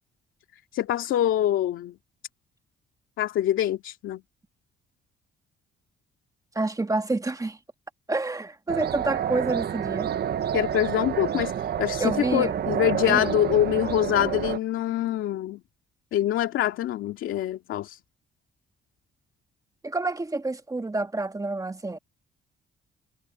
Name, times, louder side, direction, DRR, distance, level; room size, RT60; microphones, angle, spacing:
voice 1, 0.7-2.0 3.2-4.2 10.5-15.6 16.1-18.0, left 12 dB, 85° left, 2.6 m, -25 dB
voice 2, 6.5-7.6 8.1-10.1 12.0-12.5 13.1-13.2 19.8-22.0, right 2 dB, 15° right, 1.8 m, -28 dB
sound 1, 8.7-14.6, right 9 dB, 55° right, 0.9 m, -29 dB
cardioid pair, 90°, 20 cm